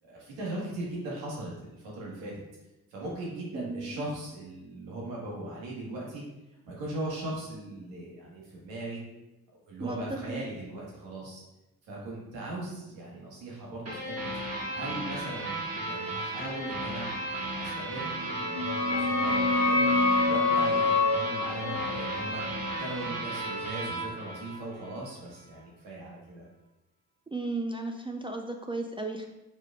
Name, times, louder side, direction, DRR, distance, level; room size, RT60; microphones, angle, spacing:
voice 1, 0.0-2.3 2.9-6.2 6.6-9.0 9.7-11.4 11.8-14.3 14.7-15.5 15.8-17.1 17.5-19.9 20.2-22.4 22.8-26.4, right 1 dB, 80° right, -4 dB, 1.6 m, -39 dB
voice 2, 3.5-4.0 9.8-10.0 10.3-10.4 27.3-29.3, right 3 dB, 15° right, 3 dB, 0.4 m, -35 dB
sound 1, 13.8-25.1, right 2 dB, 35° right, 1.5 m, -35 dB
sound 2, 18.2-23.6, left 3 dB, 65° left, 1.1 m, -27 dB
5.0 x 4.5 x 2.4 m, 0.97 s
hypercardioid pair, 50°, 43 cm